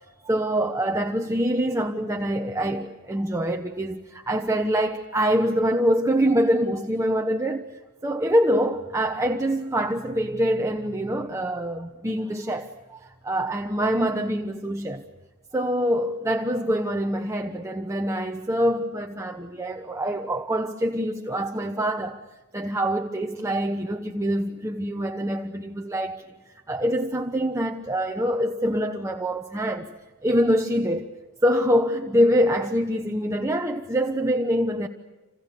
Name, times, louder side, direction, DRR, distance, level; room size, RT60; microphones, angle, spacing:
voice 1, 0.2-7.7 8.0-15.0 15.5-22.2 22.5-26.2 26.7-29.9 30.2-31.1 31.4-34.9, equal, 15° right, 1.0 m, -25 dB
28.5 x 27.5 x 6.8 m
head